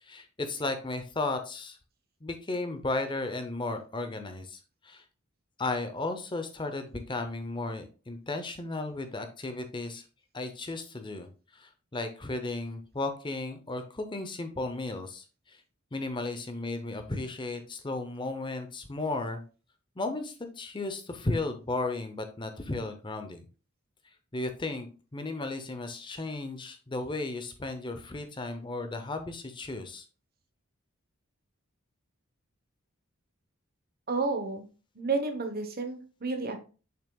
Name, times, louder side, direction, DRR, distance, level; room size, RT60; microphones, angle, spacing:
voice 1, 0.0-1.8 2.2-5.0 5.6-10.0 10.3-15.6 15.9-19.4 20.0-23.5 24.3-24.9 25.1-30.0, left 2 dB, 20° left, 7 dB, 0.6 m, -34 dB
voice 2, 34.1-34.6 34.9-36.6, right 3 dB, 45° right, 7 dB, 0.9 m, -31 dB
7.1 x 5.8 x 2.3 m, 0.36 s
head